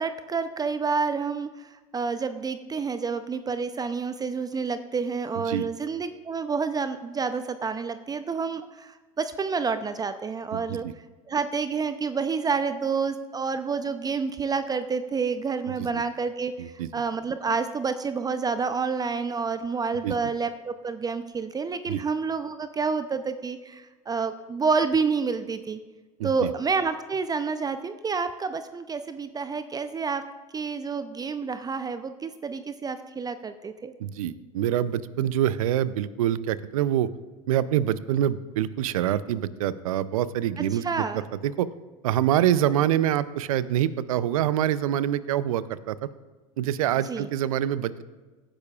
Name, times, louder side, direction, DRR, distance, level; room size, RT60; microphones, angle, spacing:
voice 1, 0.0-10.9 11.3-25.8 26.2-30.2 30.5-33.9 40.7-41.2 47.0-47.3, right 5 dB, 20° right, 11 dB, 0.5 m, -29 dB
voice 2, 10.5-10.9 15.8-15.9 16.6-16.9 20.0-20.2 21.9-22.0 26.2-26.5 34.0-37.1 37.5-41.1 41.4-41.7 42.0-46.0 46.6-48.0, right 11 dB, 75° right, 16 dB, 0.5 m, -25 dB
18.0 x 10.0 x 2.4 m, 1.2 s
hypercardioid pair, 85°, 18 cm